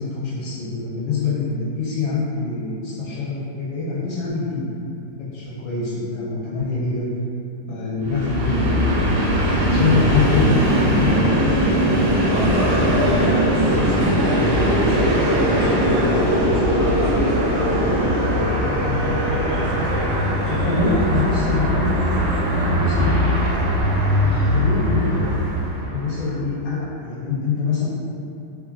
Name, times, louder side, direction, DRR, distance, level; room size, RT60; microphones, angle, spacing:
voice 1, 0.0-7.0 7.7-9.3 9.6-11.2 19.0-19.2 20.5-21.9 22.7-23.3 24.2-27.9, left 3 dB, 75° left, -9 dB, 1.3 m, -25 dB
Train, 8.0-26.1, equal, 70° right, 1.0 m, -20 dB
voice 2, 12.3-18.5 18.8-21.3 21.9-22.7, equal, 40° left, -11 dB, 0.9 m, -32 dB
3.2 x 2.2 x 2.3 m, 2.7 s
omnidirectional pair, 2.2 m